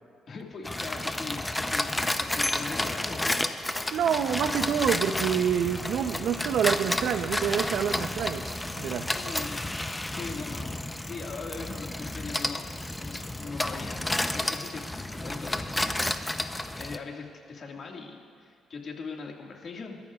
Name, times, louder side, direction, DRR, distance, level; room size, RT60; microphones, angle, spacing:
voice 1, 0.3-3.3 9.1-9.7 10.1-15.9 16.7-20.0, left 4 dB, 50° left, 1 dB, 1.9 m, -40 dB
sound 1, 0.6-17.0, left 1 dB, 10° left, 0.7 m, -31 dB
voice 2, 3.9-8.5 8.8-9.1, right 8 dB, 75° right, 10 dB, 0.7 m, -27 dB
26.0 x 13.5 x 2.4 m, 2.2 s
cardioid pair, 90°, 0 cm